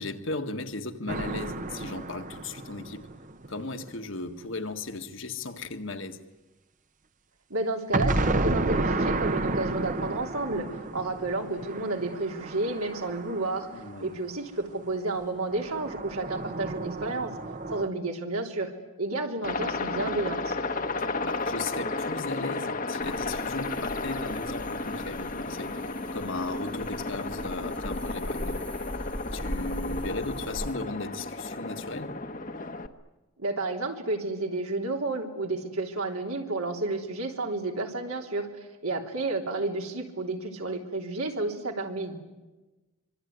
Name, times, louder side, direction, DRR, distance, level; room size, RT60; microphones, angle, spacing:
voice 1, 0.0-3.1 3.5-6.2 13.7-14.1 21.0-28.6 29.3-32.2, left 2 dB, 60° left, 1.8 m, -36 dB
sound 1, 1.1-3.9 7.9-14.2 15.5-17.9, right 2 dB, 35° right, 0.9 m, -31 dB
voice 2, 7.5-13.7 14.0-17.3 17.7-18.7 19.0-20.6 33.4-42.2, right 2 dB, 85° right, 3.5 m, -31 dB
Aircraft, 19.4-32.9, left 3 dB, 35° left, 1.2 m, -33 dB
sound 2, 23.0-30.7, equal, 5° left, 0.9 m, -40 dB
25.5 x 24.0 x 9.5 m
head